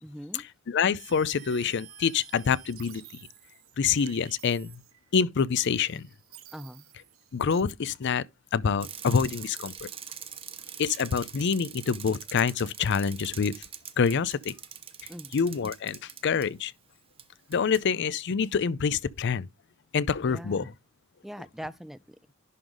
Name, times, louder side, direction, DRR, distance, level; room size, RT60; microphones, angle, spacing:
voice 1, 0.0-0.5 6.5-6.9 15.1-15.3 20.2-20.7 21.2-22.2, equal, ahead, 0.4 m, -42 dB
voice 2, 0.7-3.0 3.8-4.8 5.1-6.1 7.3-8.2 8.5-9.9 10.8-13.6 14.0-14.5 15.3-16.7 17.5-19.5 19.9-20.7, left 6 dB, 60° left, 0.5 m, -26 dB
sound 1, 1.0-5.1 5.5-7.6, right 9 dB, 85° right, 1.1 m, -51 dB
Bicycle, 8.8-16.5 17.2-17.3 17.5-17.8, right 8 dB, 30° right, 0.7 m, -43 dB
11.0 x 3.9 x 5.1 m
head